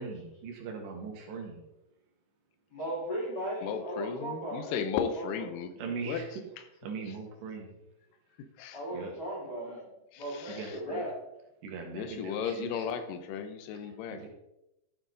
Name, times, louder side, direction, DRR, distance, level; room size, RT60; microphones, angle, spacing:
voice 1, 0.0-1.6 5.8-6.4 6.8-7.8 8.9-9.1 10.5-11.1 11.6-12.9 13.7-14.3, right 5 dB, 85° right, 1 dB, 4.0 m, -40 dB
voice 2, 2.7-4.8 5.1-5.2 8.7-9.9 10.2-11.1, right 1 dB, 35° left, -5 dB, 5.0 m, -37 dB
voice 3, 3.6-5.7 6.1-6.2 8.6-8.8 10.1-10.8 11.9-14.3, left 7 dB, 80° left, 9 dB, 2.0 m, -35 dB
13.5 x 7.4 x 3.9 m, 0.90 s
omnidirectional pair, 4.8 m